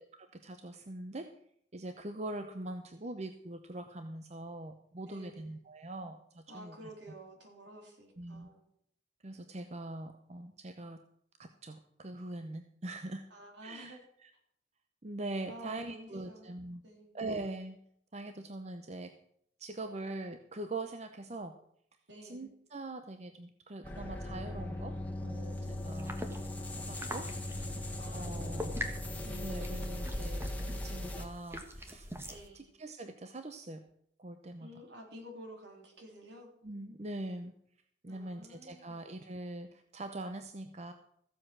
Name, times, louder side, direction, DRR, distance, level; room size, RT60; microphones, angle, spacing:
voice 1, 0.0-1.3 1.7-6.9 8.2-8.5 9.2-11.0 11.4-13.3 13.6-14.3 15.0-16.8 17.1-17.8 18.1-19.2 19.6-21.5 22.2-25.0 25.2-26.1 26.8-27.3 28.1-28.8 29.2-33.8 34.2-34.7 36.6-37.5 38.0-40.9, right 2 dB, 40° right, 7 dB, 0.8 m, -43 dB
voice 2, 5.1-5.5 6.5-8.6 13.3-14.0 15.5-16.5 16.8-17.1 22.1-22.4 28.0-28.5 32.3-32.7 34.6-36.5 38.1-39.0, right 1 dB, 75° right, 1 dB, 3.9 m, -51 dB
sound 1, 23.8-31.3, left 1 dB, 10° left, 1.7 m, -38 dB
sound 2, 25.9-32.5, equal, 15° right, 1.4 m, -44 dB
15.0 x 7.7 x 6.1 m, 0.68 s
head